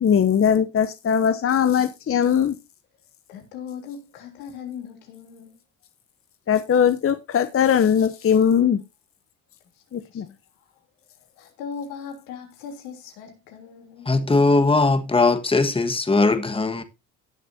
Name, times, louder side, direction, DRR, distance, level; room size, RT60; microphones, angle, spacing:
voice 1, 0.0-2.5 6.5-8.8 9.9-10.2, left 8 dB, 35° left, 0.9 m, -20 dB
voice 2, 3.3-5.6 9.7-10.7 11.2-14.1, left 6 dB, 85° left, 3.3 m, -39 dB
voice 3, 14.0-16.8, left 3 dB, 15° left, 1.6 m, -19 dB
18.5 x 6.7 x 2.7 m
supercardioid pair, 70°, 37 cm